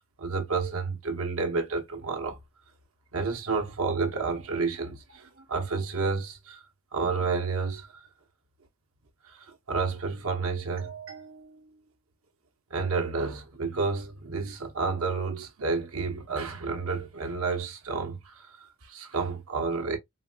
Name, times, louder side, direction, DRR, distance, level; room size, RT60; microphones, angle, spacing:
voice 1, 0.0-2.4 3.1-6.6 6.9-7.9 9.3-11.8 12.7-20.0, right 4 dB, 80° right, 0.9 m, -30 dB
4.0 x 2.2 x 2.3 m
head